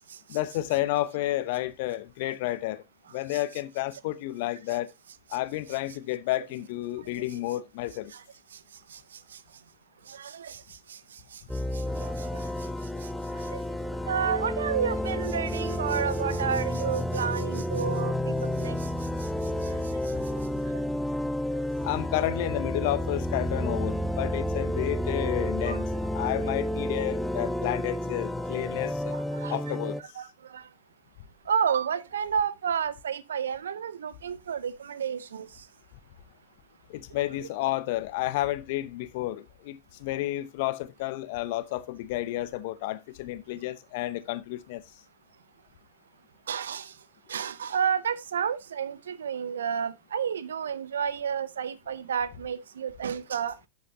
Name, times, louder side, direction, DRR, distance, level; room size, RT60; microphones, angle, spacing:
voice 1, 0.3-2.8 3.1-4.9 5.3-8.1 21.8-25.8 26.1-29.2 29.5-30.0 36.9-44.8, left 16 dB, 60° left, 0.8 m, -31 dB
voice 2, 10.1-10.6 10.9-11.0 11.3-11.4 11.7-12.5 13.3-13.6 14.1-18.8 19.6-19.7 20.7-20.8 21.5-21.6 25.6-25.8 29.1-29.6 30.2-30.6 31.5-35.5 37.4-37.5 46.5-46.9 47.3-53.5, right 7 dB, 75° right, 0.6 m, -31 dB
sound 1, 11.5-30.0, left 1 dB, ahead, 0.5 m, -30 dB
12.0 x 6.4 x 2.8 m
figure-of-eight pair, 90°, 0 cm